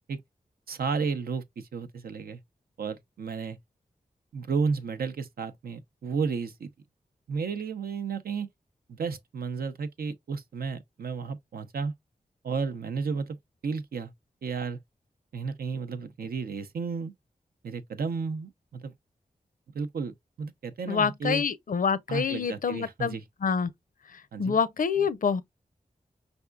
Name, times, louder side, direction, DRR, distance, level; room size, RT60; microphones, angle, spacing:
voice 1, 0.7-2.4 2.8-3.6 4.3-6.7 7.3-8.5 8.9-11.9 12.4-13.4 13.6-14.1 14.4-14.8 15.3-17.1 17.6-18.9 19.7-21.4 22.1-23.2 24.3-24.6, right 5 dB, 85° right, 0.6 m, -32 dB
voice 2, 20.9-23.2 23.4-23.7 24.4-25.4, left 6 dB, 65° left, 0.5 m, -26 dB
5.2 x 3.5 x 2.2 m
cardioid pair, 50°, 15 cm